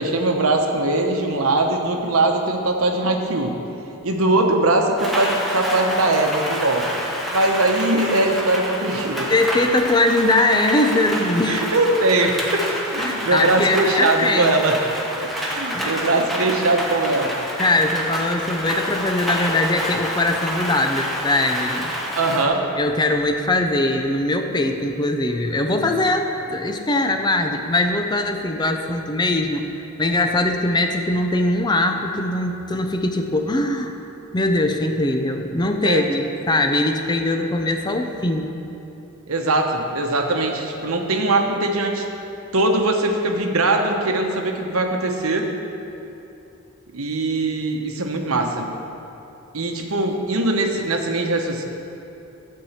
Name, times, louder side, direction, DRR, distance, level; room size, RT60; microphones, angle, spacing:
voice 1, 0.0-3.6 4.0-6.9 7.3-9.3 9.7-9.8 11.5-12.6 12.9-14.8 15.2-17.3 22.1-22.6 35.8-36.0 39.3-42.1 42.5-45.5 46.9-48.7 49.5-51.6, right 2 dB, 75° right, 3 dB, 1.0 m, -21 dB
Rain, 5.0-22.5, equal, ahead, 1.0 m, -28 dB
voice 2, 9.3-11.7 13.0-14.5 15.7-16.0 17.6-21.9 22.8-29.7 30.0-34.0 34.3-38.6, left 2 dB, 20° left, 5 dB, 0.5 m, -21 dB
12.0 x 4.6 x 7.3 m, 2.9 s
head